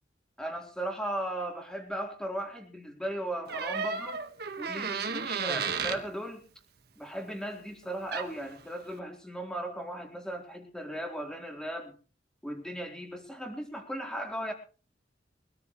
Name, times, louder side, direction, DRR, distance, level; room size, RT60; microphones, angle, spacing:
voice 1, 0.4-4.2 4.6-6.4 7.0-11.9 12.4-14.5, right 1 dB, 5° left, 1 dB, 3.9 m, -37 dB
Door, 3.5-6.0 7.8-7.9 8.1-8.5, right 5 dB, 60° right, 1.6 m, -33 dB
24.0 x 13.5 x 3.2 m, 0.37 s
head